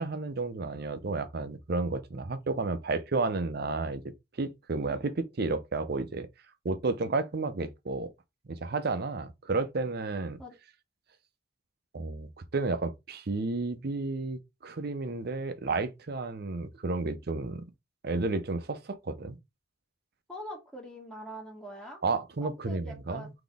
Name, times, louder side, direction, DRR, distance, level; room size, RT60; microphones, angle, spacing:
voice 1, 0.0-4.0 4.4-6.3 6.6-8.1 8.5-10.4 11.9-17.7 18.0-19.4 22.0-23.3, right 3 dB, 55° right, 0.6 m, -32 dB
voice 2, 20.3-22.0 22.4-23.3, equal, 5° left, 1.4 m, -43 dB
3.9 x 2.9 x 3.5 m
head